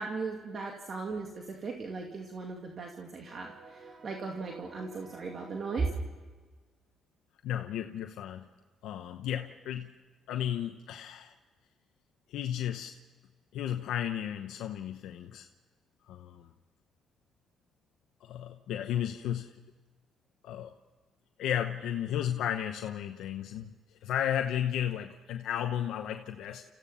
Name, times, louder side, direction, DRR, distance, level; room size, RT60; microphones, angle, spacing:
voice 1, 0.0-5.9, right 4 dB, 50° right, 1 dB, 2.4 m, -37 dB
voice 2, 7.4-8.5 8.8-9.9 10.3-11.3 12.3-12.9 13.5-15.5 16.1-16.5 18.2-19.5 20.4-20.7 21.4-23.7 24.0-26.6, left 10 dB, 85° left, 5 dB, 0.9 m, -33 dB
29.5 x 15.5 x 5.7 m, 1.4 s
cardioid pair, 90°, 0 cm